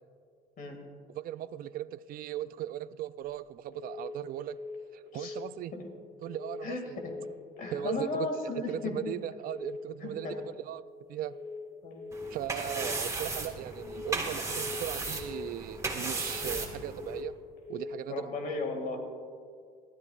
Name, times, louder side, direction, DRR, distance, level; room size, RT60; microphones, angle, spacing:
voice 1, 1.1-4.6 4.9-5.7 6.2-7.0 7.7-8.3 8.7-11.4 12.3-17.4 17.7-18.3, right 12 dB, 60° right, 16 dB, 0.4 m, -38 dB
sound 1, 3.7-4.1 4.4-4.8 5.1-5.5 6.2-6.6 6.9-7.3 7.6-8.0 8.7-9.1 9.4-9.8 10.1-10.5 11.2-11.6 11.9-12.3 12.6-13.0 13.7-14.1 14.4-14.8 15.1-15.5 16.2-16.6 16.9-17.3 17.6-18.0, left 3 dB, 75° left, 3.2 m, -42 dB
voice 2, 6.6-7.1 7.6-9.1 10.0-10.4 11.8-12.1 16.7-16.9 18.1-19.0, left 3 dB, 55° left, 4 dB, 2.1 m, -36 dB
sound 2, 12.1-17.2, right 3 dB, 20° right, 1.6 m, -36 dB
18.5 x 13.0 x 2.4 m, 2.1 s
cardioid pair, 110°, 17 cm